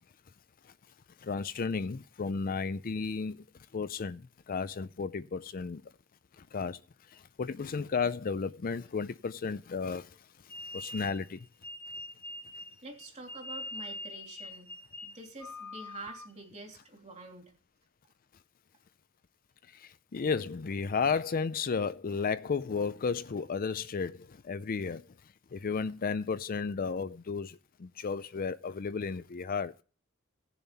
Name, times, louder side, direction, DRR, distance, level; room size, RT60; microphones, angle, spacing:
voice 1, 1.2-3.4 3.7-5.8 6.4-6.8 7.1-10.1 10.7-11.4 19.7-25.1 25.5-29.7, left 5 dB, 40° left, 0.5 m, -33 dB
sound 1, 10.5-16.5, left 2 dB, 5° left, 1.0 m, -43 dB
voice 2, 12.8-14.7 15.0-17.5, right 2 dB, 35° right, 3.2 m, -47 dB
17.0 x 7.0 x 4.1 m
head